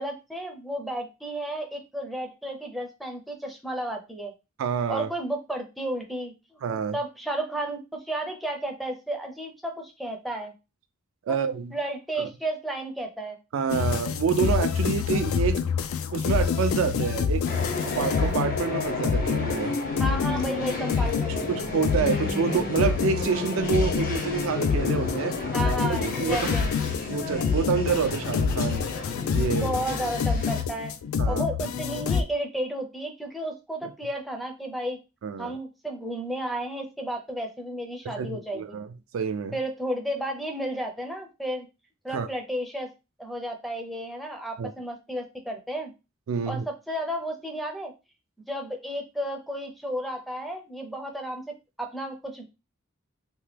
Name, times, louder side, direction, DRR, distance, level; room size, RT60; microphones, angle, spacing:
voice 1, 0.0-4.3 4.9-6.6 6.9-7.8 8.0-10.5 11.3-11.4 11.7-13.4 20.0-21.5 25.5-26.7 29.5-30.9 31.3-35.0 35.4-38.8 39.5-41.7 42.0-42.9 43.2-45.9 46.5-47.9 48.5-52.4, right 1 dB, ahead, 0.5 m, -32 dB
voice 2, 4.6-5.1 6.6-7.0 11.3-11.7 12.2-12.3 13.5-15.7 16.1-17.5 17.8-19.8 21.5-25.4 25.8-26.5 27.1-28.9 29.3-29.7 31.2-31.5 35.2-35.6 38.0-38.9 39.1-39.5 42.1-42.3 44.6-44.7 46.3-46.6, right 6 dB, 65° right, 0.3 m, -27 dB
sound 1, 13.7-32.2, left 6 dB, 70° left, 0.3 m, -27 dB
sound 2, 17.5-30.6, left 3 dB, 40° left, 0.7 m, -32 dB
2.9 x 2.2 x 3.2 m
head